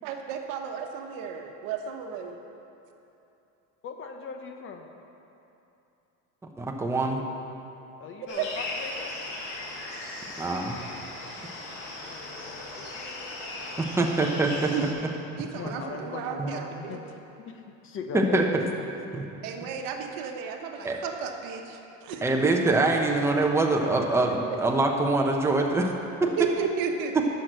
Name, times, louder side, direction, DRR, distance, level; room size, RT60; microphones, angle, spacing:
voice 1, 0.0-2.3 8.4-8.5 14.7-14.9 15.4-17.0 19.4-22.2 24.3-24.4 26.4-27.2, right 7 dB, 65° right, 4 dB, 1.1 m, -33 dB
voice 2, 3.8-4.8 8.0-9.1 12.0-12.9 13.7-14.0 15.5-17.2 17.5-18.9, left 5 dB, 35° left, 4 dB, 0.9 m, -39 dB
voice 3, 6.6-7.2 10.4-10.8 13.8-14.7 16.4-16.5 18.1-18.7 19.1-19.2 20.8-21.0 22.2-25.9, right 2 dB, 5° right, 1 dB, 0.8 m, -24 dB
sound 1, 8.3-14.9, left 2 dB, 80° left, 2.7 m, -38 dB
10.5 x 6.3 x 6.7 m, 2.9 s
cardioid pair, 135°, 36 cm